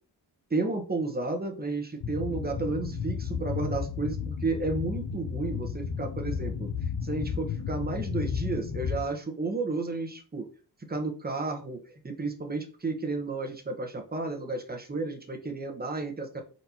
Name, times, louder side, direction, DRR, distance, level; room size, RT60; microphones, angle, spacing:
voice 1, 0.5-6.7 7.0-10.5 10.9-16.4, right 3 dB, 20° right, 4 dB, 1.0 m, -32 dB
sound 1, 2.0-9.1, left 6 dB, 65° left, 0.7 m, -33 dB
4.1 x 4.0 x 2.9 m, 0.38 s
wide cardioid pair, 95°, 41 cm